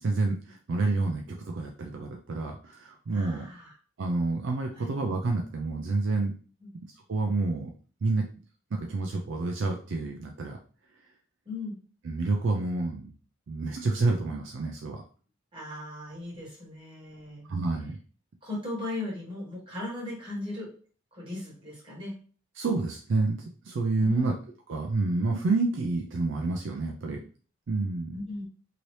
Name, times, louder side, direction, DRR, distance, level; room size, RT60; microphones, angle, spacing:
voice 1, 0.0-3.5 4.0-6.3 7.1-7.7 8.0-8.3 8.7-10.6 12.0-13.1 13.5-15.0 17.5-17.9 22.6-23.4 23.7-24.3 24.7-27.2 27.7-28.2, right 3 dB, 60° right, 2 dB, 0.4 m, -28 dB
voice 2, 3.1-3.7 4.8-4.9 6.6-6.7 11.4-11.8 15.5-17.5 18.4-20.7 21.1-22.1 24.0-24.3 28.1-28.4, left 2 dB, 25° right, -5 dB, 1.4 m, -37 dB
2.8 x 2.7 x 3.1 m, 0.40 s
head